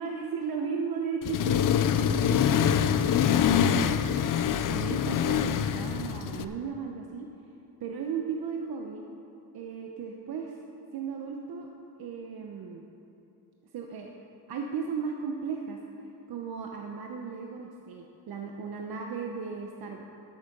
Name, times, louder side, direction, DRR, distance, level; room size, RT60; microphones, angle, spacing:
voice 1, 0.0-1.6 1.9-4.2 4.7-7.3 7.8-9.0 9.5-10.6 10.9-11.7 12.0-12.8 13.7-14.1 14.5-15.8 16.3-20.0, right 5 dB, 60° right, 1 dB, 0.9 m, -36 dB
Accelerating revving vroom, 1.2-6.4, left 8 dB, 50° left, 0.5 m, -25 dB
12.0 x 8.5 x 5.4 m, 2.8 s
cardioid pair, 155°, 41 cm